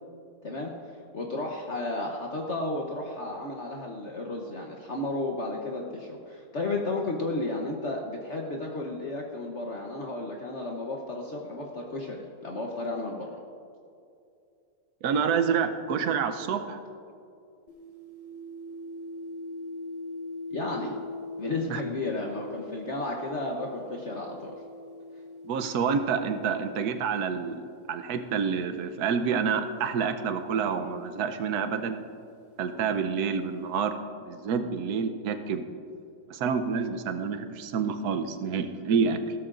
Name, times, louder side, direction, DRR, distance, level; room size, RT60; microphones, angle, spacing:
voice 1, 0.4-0.7 1.1-13.4 20.5-21.0 21.4-24.5, left 2 dB, 50° left, 0 dB, 1.1 m, -33 dB
voice 2, 15.0-16.8 21.7-21.8 25.4-32.0 32.6-34.0 34.2-35.7 36.3-39.2, right 6 dB, 70° right, 8 dB, 1.2 m, -28 dB
sound 1, 17.7-28.0 28.9-32.7, left 2 dB, 25° right, 1.3 m, -43 dB
16.5 x 13.5 x 2.5 m, 2.5 s
omnidirectional pair, 1.7 m